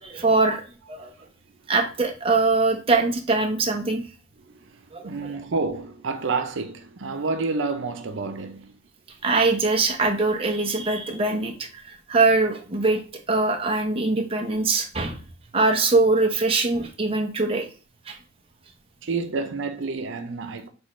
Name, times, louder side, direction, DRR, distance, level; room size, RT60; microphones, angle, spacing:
voice 1, 0.0-0.6 0.9-1.1 1.7-4.0 4.9-5.3 9.2-13.0 13.3-15.2 15.5-17.7 18.1-18.2, right 3 dB, 30° right, 0.7 m, -22 dB
voice 2, 4.4-8.8 19.0-20.7, right 4 dB, 85° right, 0.6 m, -29 dB
6.2 x 2.4 x 3.1 m
head